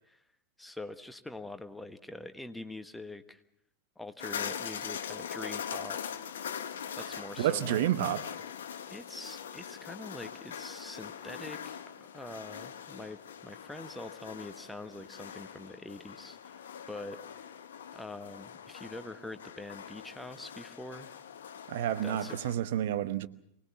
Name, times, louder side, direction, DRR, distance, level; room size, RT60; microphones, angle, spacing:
voice 1, 0.6-3.4 4.0-6.1 6.9-7.9 8.8-17.5 17.9-21.1 22.0-22.4, left 2 dB, 5° left, 1.2 m, -44 dB
sound 1, 4.2-22.6, left 8 dB, 60° left, 1.0 m, -42 dB
voice 2, 7.4-8.2 21.7-23.3, right 11 dB, 55° right, 1.0 m, -29 dB
24.5 x 19.0 x 7.1 m
figure-of-eight pair, 90°, 0 cm